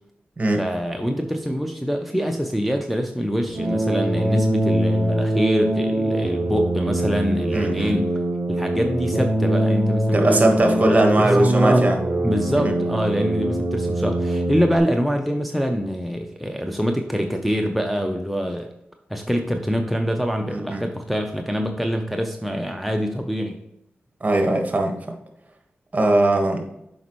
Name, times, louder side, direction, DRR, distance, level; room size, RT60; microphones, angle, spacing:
voice 1, 0.6-8.2 8.5-11.9 12.2-18.7 19.1-23.6, equal, ahead, 3 dB, 0.7 m, -25 dB
sound 1, 3.5-14.8, right 1 dB, 55° right, 1.3 m, -23 dB
voice 2, 7.5-7.9 10.1-12.0 20.5-20.8 24.2-25.0 25.9-26.7, right 1 dB, 35° right, 3 dB, 1.4 m, -19 dB
7.0 x 5.2 x 3.1 m, 0.82 s
cardioid pair, 45°, 4 cm